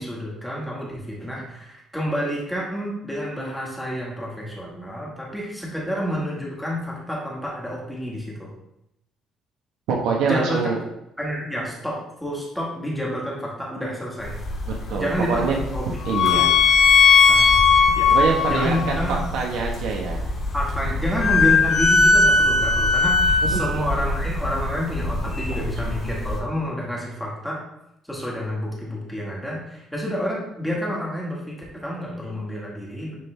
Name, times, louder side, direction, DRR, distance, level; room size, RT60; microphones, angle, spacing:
voice 1, 0.0-8.5 10.2-10.7 11.2-14.4 14.9-16.5 17.3-17.5 17.9-18.1 18.5-19.2 20.5-27.6 28.1-33.2, equal, 5° left, -4 dB, 1.6 m, -29 dB
voice 2, 9.9-10.8 14.9-15.5 16.1-16.5 18.1-20.2 23.5-23.6, right 5 dB, 85° right, -1 dB, 1.1 m, -24 dB
sound 1, 14.2-26.4, left 4 dB, 35° left, 2.2 m, -19 dB
9.9 x 3.6 x 3.3 m, 0.82 s
cardioid pair, 160°, 0 cm